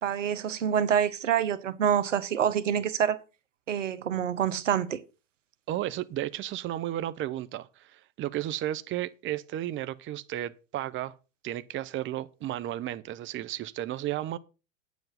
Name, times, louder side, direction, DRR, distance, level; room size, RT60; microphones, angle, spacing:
voice 1, 0.0-3.2 3.7-5.0, right 8 dB, 90° right, 1.2 m, -26 dB
voice 2, 5.7-11.1 11.4-14.4, right 13 dB, 35° right, 0.8 m, -33 dB
9.3 x 7.2 x 5.7 m
hypercardioid pair, 100°, 36 cm